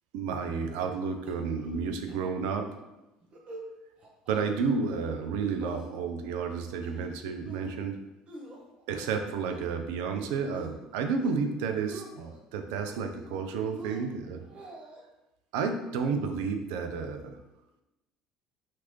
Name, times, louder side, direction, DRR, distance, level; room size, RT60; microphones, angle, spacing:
voice 1, 0.1-2.7 4.3-8.0 8.9-14.5 15.5-17.4, right 5 dB, 60° right, 6 dB, 0.3 m, -31 dB
sound 1, 1.3-1.8 2.1-2.2 2.5-2.8 3.2-3.7 4.0-4.4 4.8-5.3 5.6-6.3 6.7-7.1 7.5-7.8 8.3-9.8 10.1-10.7 11.1-11.5 11.7-12.4 12.8-13.4 13.7-15.0, right 2 dB, 40° right, 0.7 m, -47 dB
2.9 x 2.5 x 3.0 m, 0.95 s
figure-of-eight pair, 60°, 3 cm